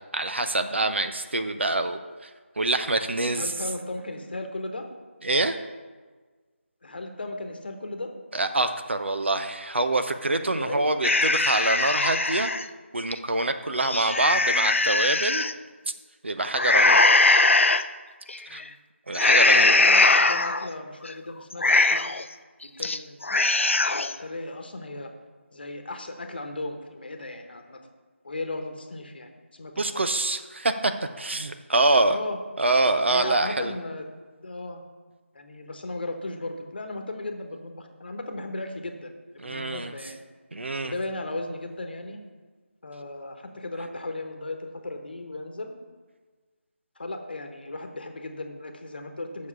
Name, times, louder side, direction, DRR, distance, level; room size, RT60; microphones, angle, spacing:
voice 1, 0.1-2.3 2.6-3.5 5.2-5.6 8.3-12.5 12.9-15.4 16.2-17.0 18.5-18.6 19.1-19.8 29.8-32.2 32.6-33.7 39.4-39.9 40.5-40.9, right 2 dB, 60° right, 8 dB, 0.7 m, -25 dB
voice 2, 3.3-4.9 6.8-8.1 10.4-10.9 18.5-18.7 19.1-22.0 22.8-25.1 25.5-27.8 28.2-30.0 32.1-32.4 33.1-34.1 34.4-34.8 35.3-40.2 40.8-42.2 42.8-45.7 47.0-49.5, left 2 dB, 50° left, 5 dB, 1.2 m, -36 dB
sound 1, 11.0-12.6 13.1-13.2 13.7-15.5 16.5-17.8 18.3-18.6 19.1-20.7 21.0-21.1 21.5-22.2 22.6-23.0 23.2-24.1, left 3 dB, 70° left, 0.5 m, -21 dB
7.3 x 6.5 x 6.9 m, 1.4 s
figure-of-eight pair, 165°, 7 cm